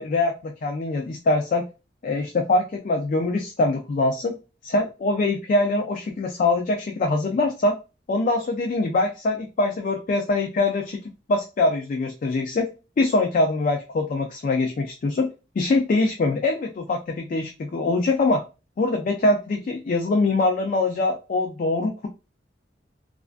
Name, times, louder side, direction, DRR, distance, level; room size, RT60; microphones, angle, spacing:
voice 1, 0.0-1.7 2.0-4.4 4.6-7.7 8.1-11.0 11.3-12.7 13.0-15.3 15.6-18.4 18.8-22.1, left 2 dB, 45° left, 3 dB, 0.3 m, -23 dB
2.4 x 2.2 x 2.4 m, 0.30 s
head